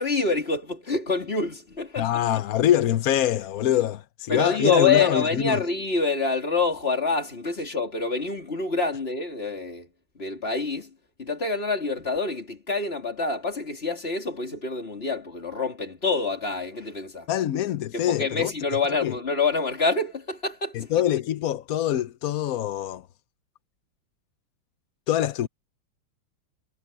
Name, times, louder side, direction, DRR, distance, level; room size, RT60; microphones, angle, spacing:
voice 1, 0.0-2.1 4.3-9.9 10.1-17.3 17.9-20.9, left 4 dB, 25° left, 3.2 m, -26 dB
voice 2, 2.0-5.6 17.3-18.5 19.0-19.1 20.7-23.1 25.1-25.5, left 11 dB, 75° left, 0.8 m, -24 dB
omnidirectional pair, 2.4 m